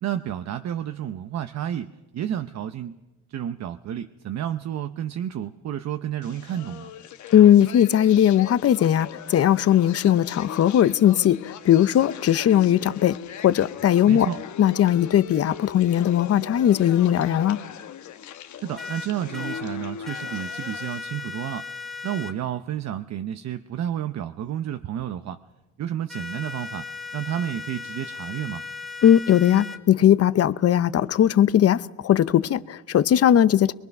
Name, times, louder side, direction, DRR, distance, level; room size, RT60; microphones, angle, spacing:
voice 1, 0.0-3.0 3.3-6.9 14.1-14.4 18.6-21.6 22.0-25.4 25.8-26.9 27.1-28.6, right 10 dB, 60° right, 0.8 m, -31 dB
sound 1, 6.2-21.0, left 9 dB, 75° left, 1.1 m, -40 dB
voice 2, 7.3-14.3 14.6-17.6 29.0-33.7, left 10 dB, 50° left, 0.7 m, -19 dB
sound 2, 18.8-19.6 20.1-22.3 26.1-29.8, left 4 dB, ahead, 1.5 m, -36 dB
23.5 x 22.5 x 5.9 m
cardioid pair, 90°, 30 cm